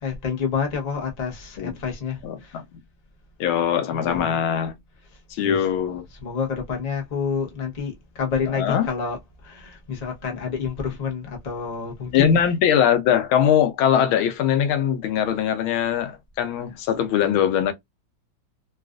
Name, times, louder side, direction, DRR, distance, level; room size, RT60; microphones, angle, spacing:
voice 1, 0.0-2.6 3.9-4.4 5.0-5.7 6.1-12.4, left 6 dB, 30° left, 0.7 m, -29 dB
voice 2, 2.2-2.8 3.4-4.7 5.3-6.0 8.5-8.9 12.1-17.7, left 9 dB, 90° left, 1.5 m, -21 dB
3.9 x 2.3 x 2.4 m
omnidirectional pair, 2.2 m